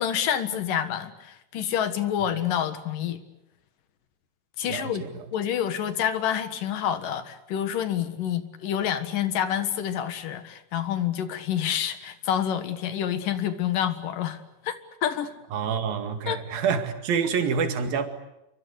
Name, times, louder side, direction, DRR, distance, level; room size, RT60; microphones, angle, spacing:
voice 1, 0.0-3.2 4.6-5.0 5.3-14.8 15.0-15.3 16.3-16.4, left 9 dB, 70° left, 3.2 m, -28 dB
voice 2, 4.6-5.3 15.5-18.1, right 6 dB, 90° right, 4.0 m, -27 dB
27.5 x 24.0 x 8.3 m
omnidirectional pair, 4.0 m